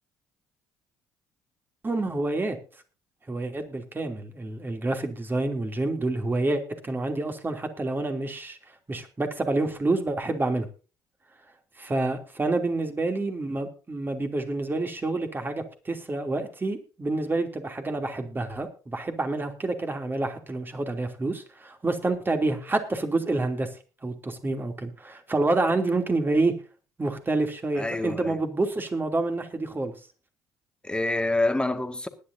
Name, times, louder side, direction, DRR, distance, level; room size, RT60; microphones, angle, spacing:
voice 1, 1.8-2.6 3.3-8.6 8.9-10.7 11.8-23.7 24.0-26.5 27.0-29.9, right 2 dB, 25° right, 2.9 m, -28 dB
voice 2, 27.8-28.4 30.8-32.1, left 2 dB, 10° left, 2.0 m, -27 dB
20.5 x 10.0 x 2.7 m
hypercardioid pair, 55°, 8 cm